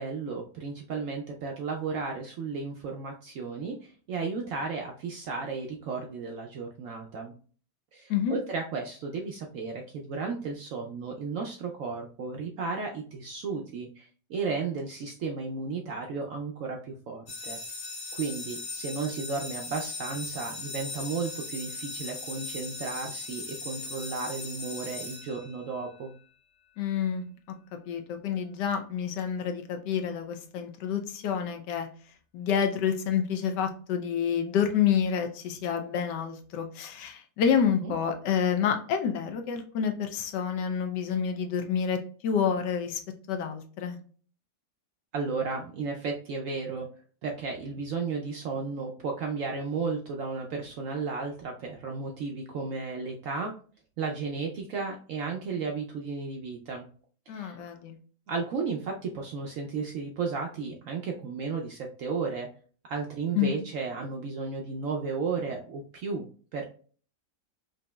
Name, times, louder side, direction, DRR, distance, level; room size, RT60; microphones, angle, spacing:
voice 1, 0.0-7.4 7.9-17.6 18.1-26.1 37.8-37.9 45.1-46.9 47.2-53.5 54.0-56.9 57.3-57.6 58.3-62.5 62.9-66.6, right 4 dB, 70° right, 1 dB, 0.8 m, -34 dB
sound 1, 17.3-25.9, left 3 dB, 50° left, 1.7 m, -39 dB
voice 2, 26.8-27.6 27.9-31.9 32.3-43.0 43.3-44.0 57.3-58.0 63.3-63.5, left 7 dB, 85° left, 6 dB, 1.3 m, -28 dB
5.0 x 2.7 x 2.2 m, 0.42 s
omnidirectional pair, 1.8 m